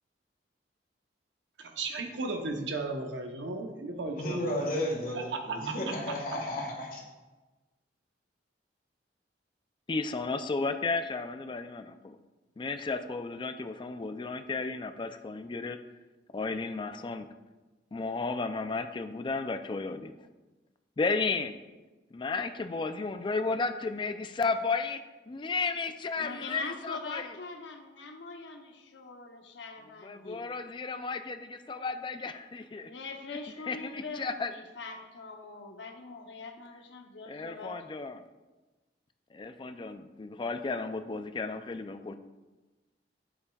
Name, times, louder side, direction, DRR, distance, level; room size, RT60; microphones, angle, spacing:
voice 1, 1.8-4.6 5.1-5.7, right 3 dB, 85° right, 3 dB, 0.8 m, -35 dB
voice 2, 4.1-7.0, left 1 dB, 50° left, 0 dB, 1.5 m, -33 dB
voice 3, 9.9-12.2 12.6-15.8 16.3-17.3 17.9-20.2 21.0-21.5 22.1-25.0 25.3-27.3 30.0-32.9 33.7-34.5 37.3-38.2 39.3-42.1, left 4 dB, 25° left, 9 dB, 0.3 m, -33 dB
voice 4, 26.2-30.5 32.8-37.8, left 3 dB, 80° left, 4 dB, 0.8 m, -43 dB
8.4 x 7.1 x 2.3 m, 1.2 s
head